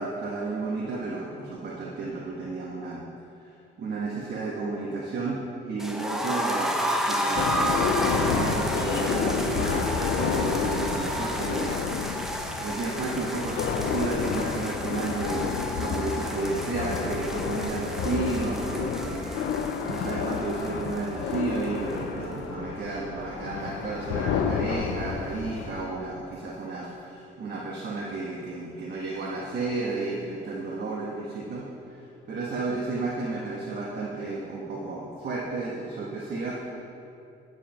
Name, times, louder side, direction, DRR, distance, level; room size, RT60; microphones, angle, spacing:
voice 1, 0.0-3.0 3.4-11.8 12.6-36.6, right 3 dB, 55° right, -5 dB, 1.4 m, -32 dB
sound 1, 5.8-21.6 21.9-22.0 22.3-22.4, equal, ahead, 0.9 m, -32 dB
sound 2, 7.3-25.8, left 6 dB, 85° left, 0.6 m, -30 dB
Wind instrument woodwind instrument, 15.8-19.5 19.8-23.7, right 4 dB, 35° right, 0.9 m, -44 dB
10.0 x 4.9 x 5.8 m, 2.6 s
cardioid pair, 90°, 20 cm